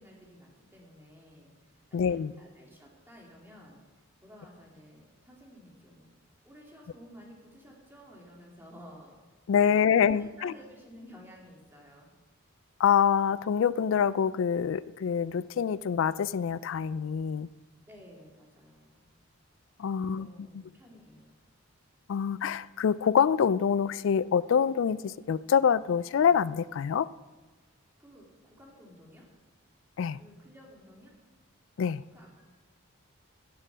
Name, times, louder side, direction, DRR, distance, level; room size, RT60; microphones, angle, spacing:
voice 1, 0.0-3.8 4.2-6.1 6.4-9.1 9.7-12.1 17.9-19.1 19.9-21.4 28.0-29.3 30.1-31.1 32.1-32.4, equal, 10° right, -3 dB, 2.7 m, -53 dB
voice 2, 1.9-2.3 9.5-10.5 12.8-17.5 19.8-20.3 22.1-27.1 30.0-30.2 31.8-32.0, left 7 dB, 65° left, 19 dB, 0.3 m, -26 dB
16.5 x 6.7 x 6.1 m, 1.2 s
head